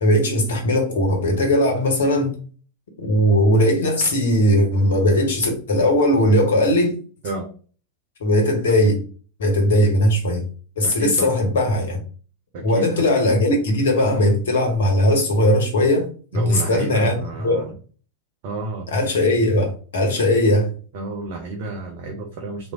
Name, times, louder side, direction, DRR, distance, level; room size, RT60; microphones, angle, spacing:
voice 1, 0.0-2.3 3.0-7.0 8.2-9.0 9.4-10.4 10.8-12.0 12.6-16.1 16.3-17.7 18.9-20.7, left 1 dB, 60° left, 3 dB, 1.0 m, -19 dB
voice 2, 10.8-11.3 12.5-13.1 16.3-17.7 18.4-18.9 20.1-20.2 20.9-22.7, right 3 dB, 45° right, 0 dB, 0.6 m, -31 dB
3.1 x 2.4 x 2.4 m, 0.39 s
figure-of-eight pair, 90°, 0 cm